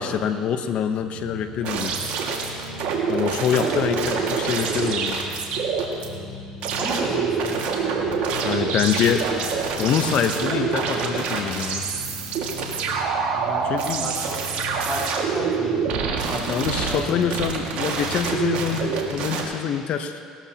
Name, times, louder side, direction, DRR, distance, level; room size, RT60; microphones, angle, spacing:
voice 1, 0.0-2.0 3.1-5.2 8.4-9.3 9.8-11.8 13.7-14.1 16.5-20.2, left 8 dB, 60° left, 9 dB, 0.9 m, -25 dB
sound 1, 1.0-19.4, left 2 dB, 75° left, 3.8 m, -39 dB
sound 2, 1.6-6.1 6.6-19.4, right 5 dB, 65° right, 2.0 m, -26 dB
voice 2, 3.5-3.8 6.8-7.7 13.3-16.6 16.9-17.2, right 1 dB, 20° right, -4 dB, 3.8 m, -33 dB
19.5 x 13.0 x 2.9 m, 2.2 s
supercardioid pair, 75°, 2 cm